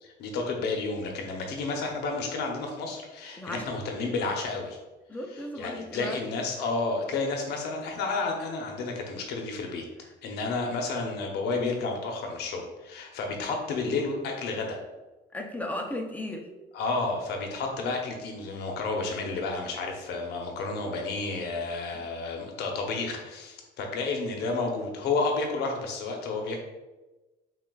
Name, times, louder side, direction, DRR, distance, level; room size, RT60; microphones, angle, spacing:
voice 1, 0.0-4.8 5.3-9.8 10.2-14.8 16.7-26.6, left 3 dB, 75° left, 2 dB, 0.8 m, -31 dB
voice 2, 5.1-6.4 13.3-13.4 15.3-16.5 21.9-22.0, left 1 dB, 10° left, 2 dB, 0.6 m, -36 dB
5.9 x 2.4 x 2.3 m, 1.1 s
cardioid pair, 110°, 17 cm